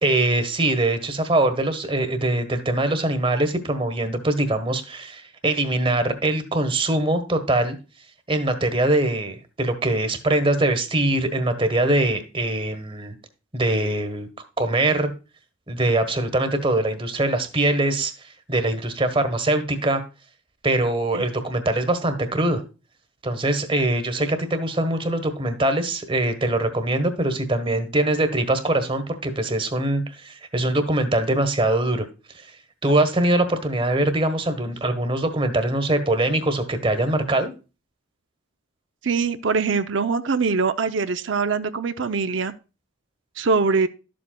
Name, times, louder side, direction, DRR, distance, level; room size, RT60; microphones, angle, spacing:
voice 1, 0.0-7.8 8.3-13.1 13.5-14.3 14.6-15.1 15.7-18.1 18.5-20.0 20.6-22.6 23.2-32.1 32.3-32.5 32.8-37.5, right 2 dB, 25° right, 8 dB, 1.2 m, -22 dB
voice 2, 39.0-42.5 43.4-43.9, right 4 dB, 65° right, 10 dB, 0.6 m, -23 dB
12.0 x 7.7 x 2.3 m, 0.31 s
head